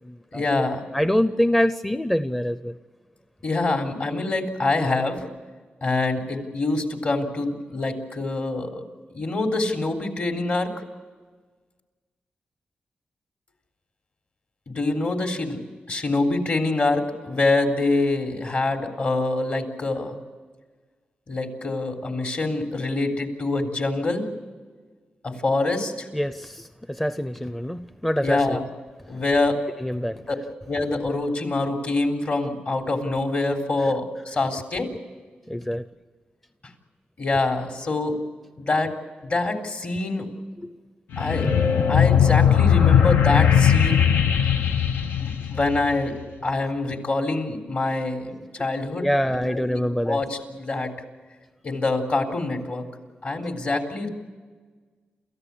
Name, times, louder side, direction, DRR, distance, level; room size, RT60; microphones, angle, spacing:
voice 1, 0.3-0.8 3.4-5.3 5.8-8.8 9.1-10.7 14.7-15.6 15.9-20.1 21.3-24.3 25.2-26.1 28.2-28.7 29.1-29.6 30.1-30.4 30.7-34.9 37.2-38.2 38.6-38.9 39.2-40.3 41.2-41.5 41.9-44.1 45.2-50.9 51.6-52.9 53.2-54.1, left 2 dB, 55° left, 3 dB, 3.7 m, -25 dB
voice 2, 0.9-2.7 26.1-28.6 29.8-30.2 35.5-35.8 40.6-40.7 41.4-41.5 49.0-50.2, equal, 5° left, 11 dB, 0.6 m, -25 dB
sound 1, 41.1-46.1, left 8 dB, 85° left, 1.0 m, -19 dB
28.5 x 15.0 x 8.4 m, 1.4 s
wide cardioid pair, 95°, 3 cm